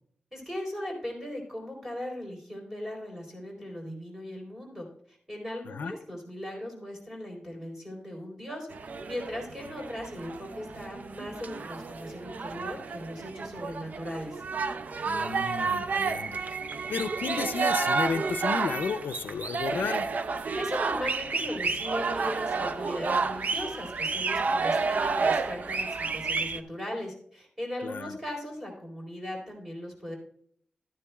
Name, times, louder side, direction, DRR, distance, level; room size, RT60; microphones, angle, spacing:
voice 1, 0.3-8.7 9.1-14.4 20.4-30.1, left 1 dB, 10° right, -1 dB, 3.9 m, -38 dB
sound 1, 8.7-26.6, right 4 dB, 55° right, 0.5 m, -30 dB
voice 2, 15.0-16.4 16.9-20.1 27.8-28.2, left 6 dB, 85° left, 10 dB, 0.4 m, -33 dB
13.0 x 9.9 x 2.3 m, 0.63 s
wide cardioid pair, 120°, 3 cm